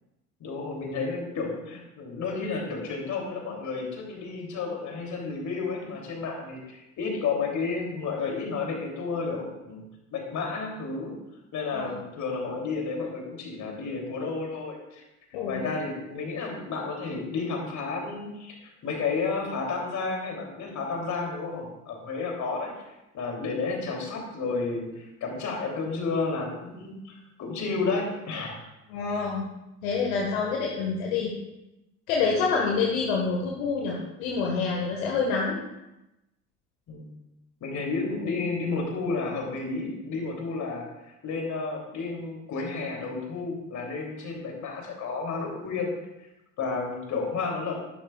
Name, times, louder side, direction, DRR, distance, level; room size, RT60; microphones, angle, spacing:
voice 1, 0.4-9.8 10.1-11.1 11.5-15.0 15.4-22.7 23.1-28.6 36.9-37.1 37.6-45.9 46.6-47.7, left 4 dB, 40° left, 0 dB, 3.3 m, -31 dB
voice 2, 15.3-15.7 28.9-29.4 29.8-31.3 32.1-35.6, left 5 dB, 60° left, -2 dB, 1.8 m, -27 dB
13.0 x 12.0 x 2.5 m, 0.93 s
figure-of-eight pair, 65°, 46 cm